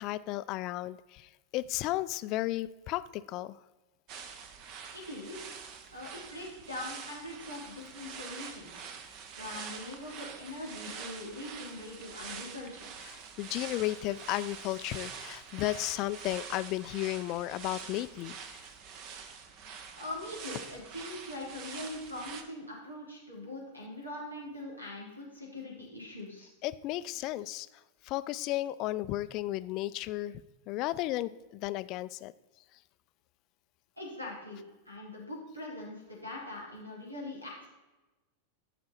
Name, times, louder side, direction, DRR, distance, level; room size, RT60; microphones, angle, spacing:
voice 1, 0.0-3.6 13.1-18.6 26.6-27.7 28.0-32.3, left 16 dB, 40° left, 15 dB, 0.4 m, -34 dB
sound 1, 4.1-22.4, right 6 dB, 40° right, 1.1 m, -45 dB
voice 2, 4.9-5.5 5.9-12.9 20.0-26.5 34.0-37.7, left 1 dB, 90° right, -3 dB, 3.7 m, -42 dB
14.0 x 6.0 x 4.3 m, 1.1 s
figure-of-eight pair, 90°, 0 cm